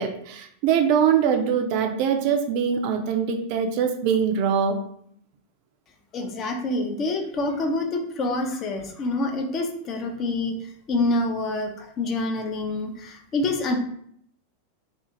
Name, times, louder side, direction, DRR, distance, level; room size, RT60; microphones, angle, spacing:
voice 1, 0.0-4.8, right 7 dB, 45° right, 5 dB, 0.3 m, -23 dB
voice 2, 6.1-10.5 10.9-13.8, left 2 dB, 30° left, 4 dB, 0.4 m, -26 dB
2.5 x 2.3 x 2.8 m, 0.67 s
figure-of-eight pair, 90°, 0 cm